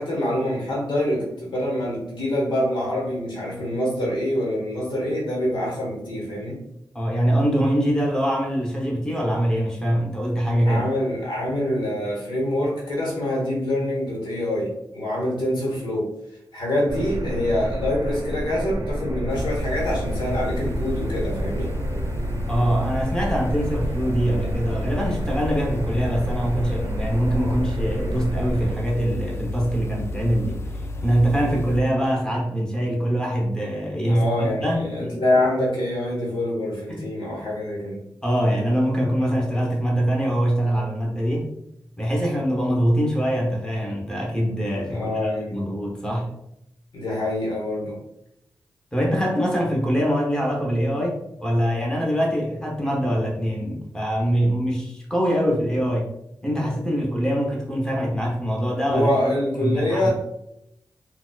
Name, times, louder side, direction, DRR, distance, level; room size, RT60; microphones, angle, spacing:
voice 1, 0.0-6.6 10.7-16.1 16.5-21.7 34.1-38.0 44.9-45.6 46.9-48.0 58.9-60.1, left 1 dB, 80° left, -3 dB, 1.2 m, -25 dB
voice 2, 6.9-10.8 22.5-30.6 31.0-35.2 36.9-37.1 38.2-41.5 42.0-46.3 48.9-56.1 56.4-59.1 59.6-60.1, equal, 10° left, -2 dB, 1.0 m, -23 dB
sound 1, 16.9-28.8, right 1 dB, 50° right, 0.6 m, -30 dB
sound 2, 19.3-31.8, left 2 dB, 35° left, 0.4 m, -31 dB
3.9 x 2.3 x 2.3 m, 0.80 s
cardioid pair, 45°, 8 cm